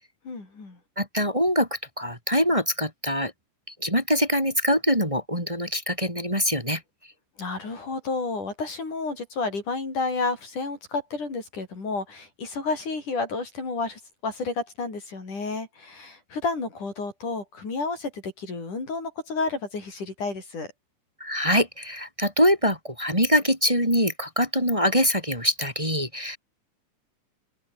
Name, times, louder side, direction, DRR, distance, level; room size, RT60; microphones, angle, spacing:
voice 1, 0.3-0.8 7.4-20.7, left 3 dB, 70° left, 8.4 m, -31 dB
voice 2, 1.0-3.3 3.7-6.8 21.2-26.4, equal, 10° right, 6.6 m, -24 dB
omnidirectional pair, 3.8 m